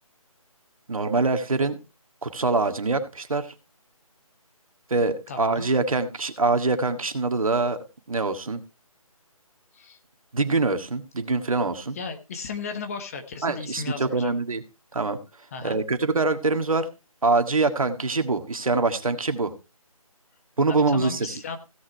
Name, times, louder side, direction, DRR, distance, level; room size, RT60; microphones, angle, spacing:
voice 1, 0.9-1.8 2.2-3.5 4.9-7.8 8.1-8.6 10.3-12.0 13.4-14.6 14.9-15.2 15.6-16.9 17.2-19.5 20.6-21.4, right 3 dB, 65° right, 8 dB, 1.8 m, -24 dB
voice 2, 5.3-5.7 9.7-10.0 11.9-14.4 15.5-15.8 20.7-21.6, left 5 dB, 25° left, 7 dB, 1.2 m, -35 dB
16.0 x 6.4 x 4.5 m, 0.29 s
figure-of-eight pair, 155°, 19 cm